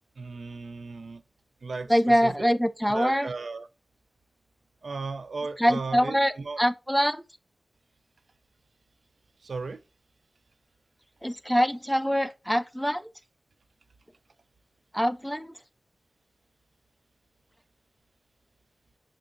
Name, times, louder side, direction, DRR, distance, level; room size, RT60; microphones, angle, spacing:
voice 1, 0.2-1.2 1.6-2.5 2.9-3.7 4.8-6.6 9.4-9.8, right 4 dB, 85° right, 0.3 m, -36 dB
voice 2, 1.9-3.3 5.6-7.2 11.2-13.1 14.9-15.5, equal, ahead, 0.3 m, -24 dB
5.4 x 2.4 x 2.5 m
wide cardioid pair, 60°, 0 cm